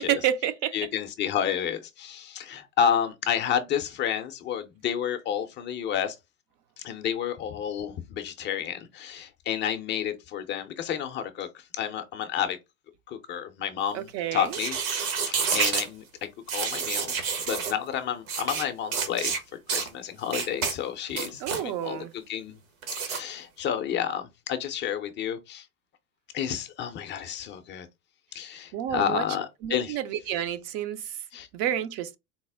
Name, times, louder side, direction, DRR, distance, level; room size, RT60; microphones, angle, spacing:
voice 1, 0.0-0.7 13.9-14.6 21.4-22.1 28.7-29.2 29.6-31.2 31.5-32.2, right 11 dB, 40° right, 0.5 m, -29 dB
voice 2, 0.7-6.2 6.8-12.6 13.1-14.1 14.3-14.8 15.2-16.0 16.5-19.4 19.7-22.5 23.0-25.6 26.3-27.9 28.3-30.0 31.3-31.5, left 9 dB, 25° left, 0.4 m, -30 dB
sound 1, 14.5-15.9 16.5-17.7 18.3-18.6 18.9-19.4 19.7-19.9 20.3-20.7 21.1-21.6 22.8-23.2, right 6 dB, 70° right, 1.2 m, -28 dB
4.1 x 2.0 x 3.3 m
hypercardioid pair, 110°, 42 cm